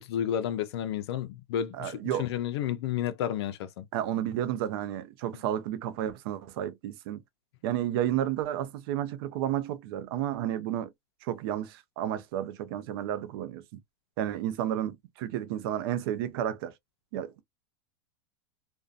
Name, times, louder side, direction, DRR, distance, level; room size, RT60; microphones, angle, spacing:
voice 1, 0.0-3.8, left 10 dB, 75° left, 0.4 m, -31 dB
voice 2, 1.7-2.3 3.9-7.2 7.6-10.9 11.2-13.6 14.2-16.7 17.1-17.4, right 11 dB, 65° right, 0.5 m, -31 dB
2.5 x 2.2 x 2.3 m
supercardioid pair, 130°, 14 cm